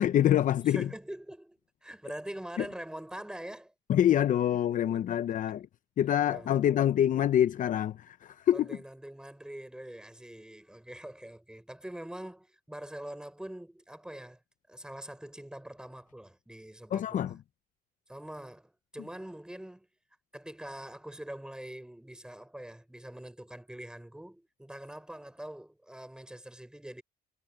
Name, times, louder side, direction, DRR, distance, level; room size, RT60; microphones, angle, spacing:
voice 1, 0.0-0.9 2.6-2.7 3.9-5.7 6.0-8.8 16.9-17.4, left 10 dB, 50° left, 0.7 m, -26 dB
voice 2, 0.6-3.7 4.5-5.6 6.3-6.7 8.5-14.4 14.7-17.4 18.1-19.9 20.3-27.0, right 1 dB, 5° right, 6.3 m, -44 dB
cardioid pair, 110°, 17 cm